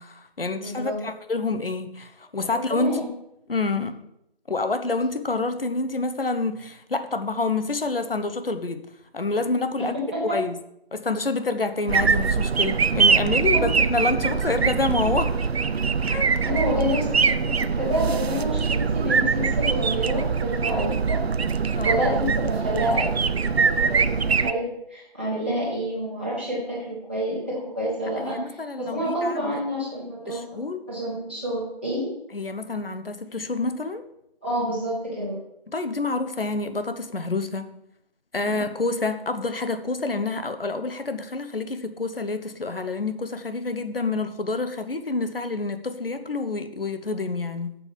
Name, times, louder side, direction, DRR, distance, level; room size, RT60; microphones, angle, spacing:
voice 1, 0.0-3.0 3.5-4.0 4.5-8.8 9.1-9.9 10.2-10.6 10.9-15.3 16.1-16.3 21.7-22.0 28.2-29.5 30.3-30.8 32.3-34.0 35.7-37.7 38.3-47.7, left 3 dB, 65° left, 9 dB, 1.0 m, -28 dB
voice 2, 0.6-1.0 2.5-3.1 9.8-10.4 13.5-13.6 16.4-21.2 21.8-28.4 28.8-30.4 30.9-32.1 34.4-35.4, equal, 10° right, -9 dB, 1.7 m, -28 dB
sound 1, 11.9-24.5, right 5 dB, 85° right, 0.6 m, -23 dB
7.0 x 5.4 x 7.3 m, 0.79 s
figure-of-eight pair, 180°, 31 cm